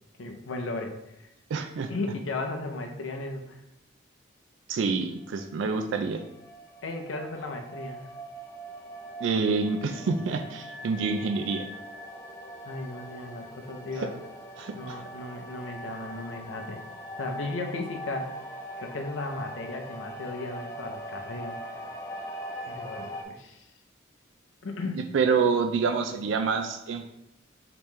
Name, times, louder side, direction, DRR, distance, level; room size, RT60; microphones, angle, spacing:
voice 1, 0.2-1.3 1.9-3.6 6.8-8.1 12.6-14.1 14.7-16.8 17.2-18.3 18.8-21.6 22.6-23.7 24.6-25.1, left 2 dB, 75° left, 4 dB, 0.6 m, -35 dB
voice 2, 1.5-1.9 4.7-6.2 9.2-11.7 13.9-14.1 14.6-15.0 24.9-27.0, right 5 dB, 70° right, 6 dB, 0.3 m, -27 dB
sound 1, 5.2-23.2, equal, 15° left, 0.5 m, -42 dB
5.0 x 3.0 x 3.2 m, 0.83 s
head